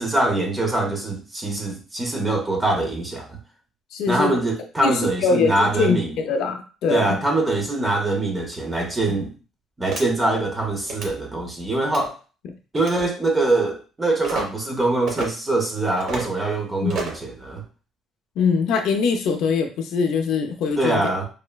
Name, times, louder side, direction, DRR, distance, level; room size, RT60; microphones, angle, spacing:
voice 1, 0.0-3.4 4.1-6.2 6.9-9.3 9.8-12.1 12.7-17.6 20.8-21.2, right 2 dB, 10° right, 1 dB, 0.6 m, -23 dB
voice 2, 3.9-4.3 4.8-7.2 16.8-16.9 18.4-21.0, left 5 dB, 65° left, 5 dB, 0.4 m, -22 dB
sound 1, 9.9-10.0 10.8-11.1 11.8-12.1 12.7-13.1 14.2-14.4 15.1-15.3 16.0-16.3 16.9-17.2, right 4 dB, 55° right, 0.7 m, -30 dB
3.1 x 2.0 x 2.2 m, 0.35 s
cardioid pair, 170°, 0 cm